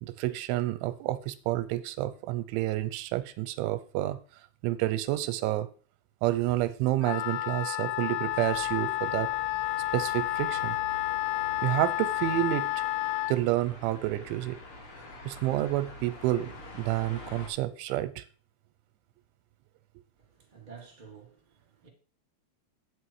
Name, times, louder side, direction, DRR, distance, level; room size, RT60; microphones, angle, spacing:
voice 1, 0.0-4.2 4.6-5.7 6.2-9.3 9.9-10.8 11.6-12.7 13.3-14.6 15.3-18.2, right 15 dB, 85° right, 3.1 m, -29 dB
Wind instrument woodwind instrument, 7.0-13.4, left 17 dB, 85° left, 2.6 m, -30 dB
sound 1, 8.3-17.5, left 1 dB, 45° left, 1.9 m, -47 dB
voice 2, 20.3-21.9, right 6 dB, 15° right, 1.7 m, -51 dB
9.0 x 6.4 x 4.7 m
omnidirectional pair, 5.5 m